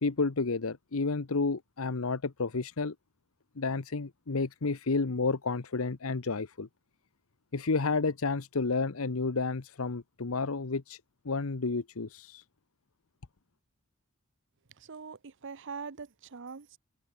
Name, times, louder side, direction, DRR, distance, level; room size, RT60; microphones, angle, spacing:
voice 1, 0.0-2.9 3.6-6.7 7.5-11.0 11.2-12.4, left 4 dB, 75° left, 0.9 m, -31 dB
voice 2, 14.8-16.8, right 5 dB, 60° right, 0.8 m, -43 dB
head